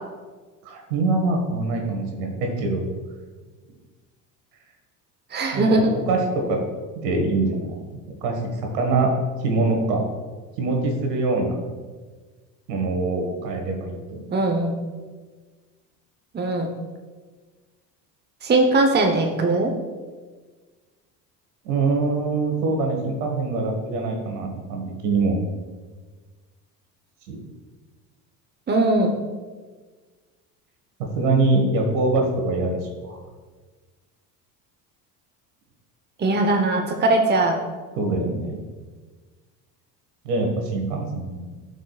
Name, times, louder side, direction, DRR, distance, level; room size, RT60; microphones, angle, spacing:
voice 1, 0.6-2.9 5.5-6.6 6.9-7.8 8.2-9.1 9.4-10.0 10.6-11.6 12.7-14.4 21.6-25.4 27.3-27.4 31.0-33.2 38.0-38.6 40.2-41.5, right 3 dB, 75° right, 2 dB, 1.6 m, -24 dB
voice 2, 5.3-5.9 14.3-14.7 16.3-16.7 18.4-19.7 28.7-29.1 36.2-37.6, right 2 dB, 20° right, 3 dB, 0.9 m, -20 dB
12.0 x 5.1 x 2.4 m, 1.4 s
hypercardioid pair, 75°, 48 cm